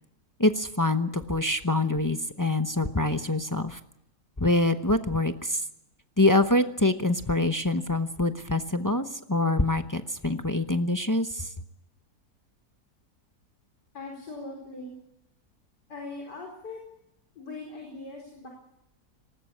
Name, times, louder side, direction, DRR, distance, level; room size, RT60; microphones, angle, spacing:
voice 1, 0.4-3.8 4.4-5.6 6.2-11.5, left 2 dB, 20° left, 8 dB, 0.6 m, -25 dB
voice 2, 13.9-14.9 15.9-16.8 17.3-18.5, left 3 dB, 90° left, 0 dB, 5.0 m, -40 dB
19.5 x 19.0 x 8.5 m, 0.81 s
omnidirectional pair, 1.8 m